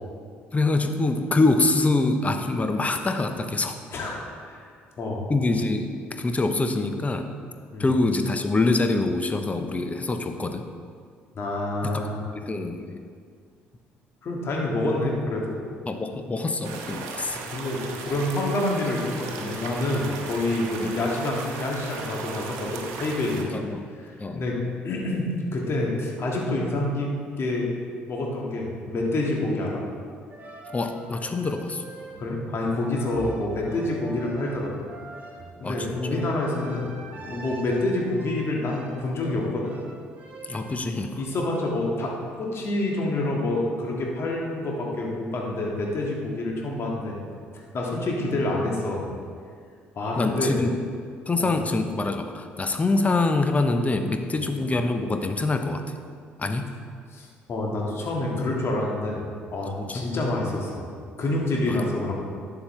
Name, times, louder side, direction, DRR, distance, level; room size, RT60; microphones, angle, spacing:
voice 1, 0.5-3.8 5.3-7.3 7.8-10.6 11.8-11.9 12.4-13.0 15.9-17.4 20.8-20.9 23.5-23.9 24.2-24.4 30.7-31.8 35.6-36.2 40.5-41.2 50.2-50.8 51.3-55.9 56.4-56.7 59.8-60.0 61.7-61.8, left 2 dB, 25° left, 6 dB, 0.8 m, -25 dB
voice 2, 5.0-5.3 7.7-7.9 11.3-12.3 14.2-15.6 17.5-23.6 24.3-24.6 24.8-27.7 28.1-29.8 32.2-34.7 35.6-36.9 37.2-39.8 41.2-47.2 47.7-49.1 50.0-50.6 51.4-51.5 54.3-54.4 57.1-59.2 59.5-60.9 61.2-62.1, left 2 dB, 45° left, -2 dB, 2.0 m, -27 dB
sound 1, 16.6-23.4, right 4 dB, 65° right, 1.0 m, -36 dB
sound 2, 30.3-41.0, right 2 dB, 30° right, 2.2 m, -42 dB
11.5 x 7.0 x 3.3 m, 2.1 s
hypercardioid pair, 50°, 6 cm